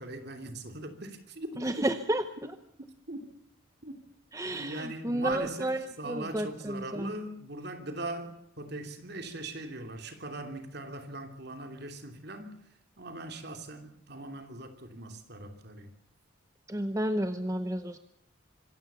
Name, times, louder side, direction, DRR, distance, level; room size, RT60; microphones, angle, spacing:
voice 1, 0.0-1.5 1.8-1.9 2.8-3.3 3.8-3.9 4.5-5.7 6.0-12.6 13.0-15.9, right 2 dB, 50° right, 2.9 m, -40 dB
voice 2, 1.6-2.5 4.3-7.1 16.7-18.0, right 1 dB, 15° right, 0.8 m, -32 dB
26.0 x 16.0 x 6.9 m
head